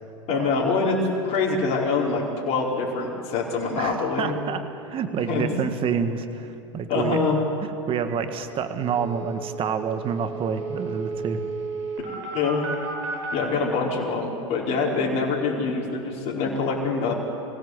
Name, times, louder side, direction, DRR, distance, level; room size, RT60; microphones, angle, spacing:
voice 1, 0.3-1.0 1.2-4.4 5.3-5.5 6.9-7.4 12.3-12.6 13.3-17.1, left 4 dB, 40° left, -3 dB, 4.8 m, -25 dB
voice 2, 3.8-7.2 7.9-11.4, right 7 dB, 35° right, 8 dB, 1.9 m, -28 dB
sound 1, 8.1-8.2 8.4-8.5 8.8-13.4, right 4 dB, 65° right, 7.2 m, -33 dB
25.0 x 16.5 x 8.1 m, 2.9 s
hypercardioid pair, 105°, 16 cm